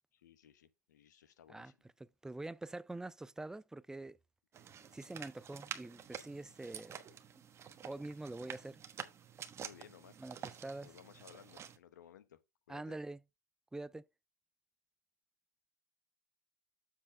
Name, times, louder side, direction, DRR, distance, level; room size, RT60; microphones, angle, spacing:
voice 1, 0.1-1.8 9.6-10.2 10.8-12.4 12.7-13.0, left 10 dB, 85° left, 1.1 m, -59 dB
voice 2, 2.0-4.2 4.9-7.0 7.4-7.5 7.8-8.8 10.2-10.9 12.7-13.2 13.7-14.0, right 2 dB, 5° right, 0.4 m, -45 dB
sound 1, 4.5-11.8, right 8 dB, 30° right, 1.2 m, -49 dB
7.5 x 4.3 x 4.9 m
hypercardioid pair, 110°, 9 cm